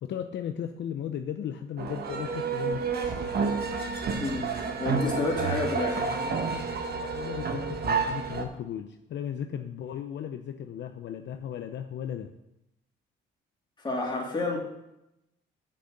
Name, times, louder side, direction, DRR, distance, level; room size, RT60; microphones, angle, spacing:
voice 1, 0.0-3.3 6.9-12.3, left 9 dB, 65° left, 7 dB, 0.6 m, -36 dB
sound 1, 1.8-8.4, right 4 dB, 55° right, 1.2 m, -30 dB
voice 2, 4.1-6.1 13.8-14.6, left 2 dB, 25° left, -3 dB, 3.3 m, -30 dB
7.8 x 6.5 x 6.6 m, 0.87 s
cardioid pair, 90°, 20 cm